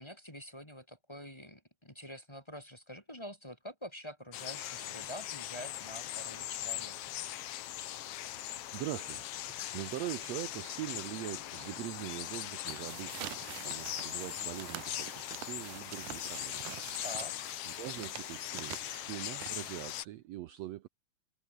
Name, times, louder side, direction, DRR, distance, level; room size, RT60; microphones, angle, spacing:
voice 1, 0.0-7.1 17.0-17.3, equal, 10° left, 4.4 m, -47 dB
sound 1, 4.3-20.0, left 13 dB, 65° left, 1.6 m, -40 dB
voice 2, 8.1-9.3 9.7-13.2 13.5-16.6 17.6-20.9, right 14 dB, 70° right, 1.7 m, -42 dB
sound 2, 12.5-20.0, right 16 dB, 90° right, 2.4 m, -47 dB
omnidirectional pair, 3.6 m